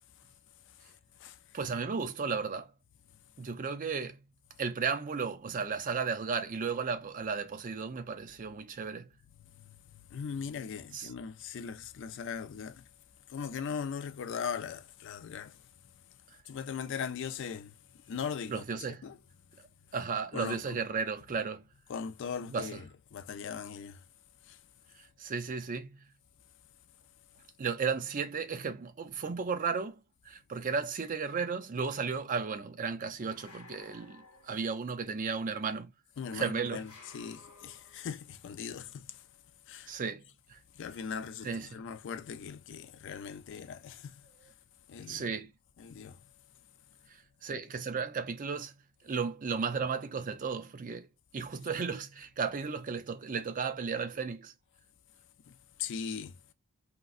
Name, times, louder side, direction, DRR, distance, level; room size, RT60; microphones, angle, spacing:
voice 1, 1.5-2.7 3.4-4.2 4.6-9.1 10.9-11.1 18.5-19.1 19.9-21.6 22.5-22.8 25.0-26.0 27.6-30.0 30.3-35.9 36.3-36.9 39.9-40.2 40.5-40.6 41.4-41.8 45.1-45.5 47.4-48.8 49.0-51.1 51.3-54.5, right 5 dB, 35° right, 0.4 m, -34 dB
voice 2, 10.1-12.8 13.3-15.6 16.5-17.7 18.1-19.2 20.3-20.8 21.9-24.0 24.5-24.6 36.2-39.2 39.7-39.9 40.8-44.2 44.9-45.2 45.8-46.2 55.5-56.4, left 6 dB, 55° left, 0.3 m, -39 dB
sound 1, 33.3-35.0 36.7-38.2, left 3 dB, 75° left, 0.9 m, -55 dB
3.8 x 2.1 x 2.4 m
head